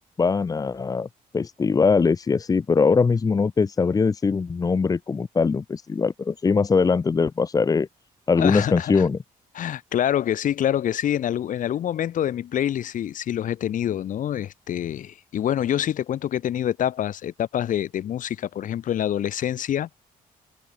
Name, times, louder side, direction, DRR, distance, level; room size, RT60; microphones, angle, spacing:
voice 1, 0.2-1.1 1.3-7.9 8.3-9.2, left 5 dB, 25° left, 1.1 m, -21 dB
voice 2, 8.4-9.1 9.6-19.9, left 10 dB, 60° left, 5.4 m, -26 dB
cardioid pair, 135°, 15 cm